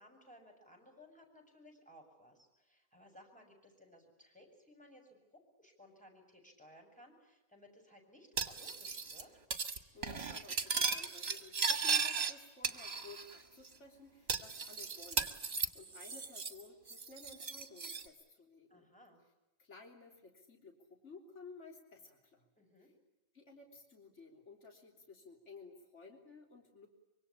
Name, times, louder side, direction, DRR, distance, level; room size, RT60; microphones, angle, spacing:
voice 1, 0.0-9.3 18.7-19.2 22.6-22.9, left 1 dB, 5° left, 1 dB, 7.0 m, -60 dB
Cutlery silverware, 8.4-9.2 9.5-9.8 10.0-12.3 12.6-13.4 13.6-13.7 14.3-16.6 16.9-18.1, right 5 dB, 50° right, 2.1 m, -36 dB
voice 2, 9.9-18.9 19.6-22.4 22.8-22.9 23.3-26.9, left 3 dB, 55° left, 2 dB, 3.7 m, -55 dB
25.5 x 24.5 x 8.6 m, 1.0 s
omnidirectional pair, 1.4 m